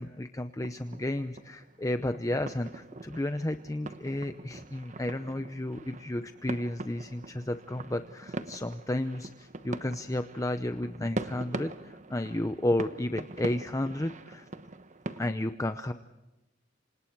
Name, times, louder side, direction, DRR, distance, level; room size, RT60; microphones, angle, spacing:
voice 1, 0.0-14.5 15.2-15.9, left 1 dB, 15° left, 9 dB, 0.7 m, -32 dB
sound 1, 0.6-15.3, right 2 dB, 40° right, 1.1 m, -42 dB
28.0 x 26.0 x 4.7 m, 1.0 s
head